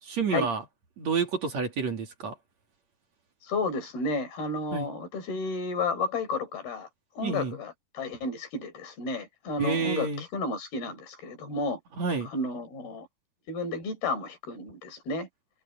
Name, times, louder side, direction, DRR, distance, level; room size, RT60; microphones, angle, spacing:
voice 1, 0.0-0.6 1.0-2.4 4.7-4.9 7.2-7.6 9.6-10.3 12.0-12.3, right 5 dB, 45° right, 3.8 m, -29 dB
voice 2, 3.4-6.9 7.2-11.8 12.3-13.1 13.5-15.3, left 3 dB, 75° left, 6.7 m, -32 dB
omnidirectional pair, 4.4 m